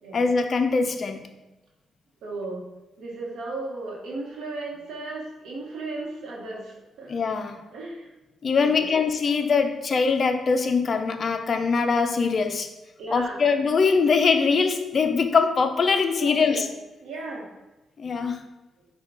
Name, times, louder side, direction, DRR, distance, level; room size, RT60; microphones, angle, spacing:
voice 1, 0.1-1.3 7.1-7.6 8.4-12.7 13.1-16.6 18.0-18.4, left 5 dB, 50° left, 7 dB, 0.4 m, -22 dB
voice 2, 2.2-2.6 3.0-7.2 7.7-8.1 8.6-8.9 9.7-9.8 13.0-13.4 16.2-16.6 17.0-17.5, right 2 dB, 85° right, -2 dB, 1.0 m, -35 dB
5.0 x 2.3 x 3.6 m, 1.0 s
cardioid pair, 85°, 0 cm